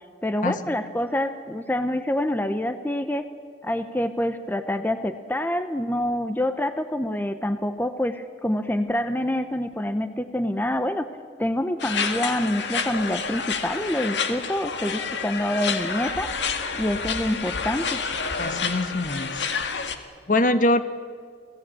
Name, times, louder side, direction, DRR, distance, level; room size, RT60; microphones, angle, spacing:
voice 1, 0.2-3.3 3.6-11.1 11.4-16.3 16.8-18.0, left 1 dB, 10° left, 9 dB, 0.8 m, -26 dB
sound 1, 11.8-20.0, left 5 dB, 75° left, 1.8 m, -29 dB
voice 2, 18.4-19.5 20.3-20.8, left 2 dB, 45° left, 10 dB, 1.3 m, -23 dB
30.0 x 18.0 x 8.8 m, 2.1 s
head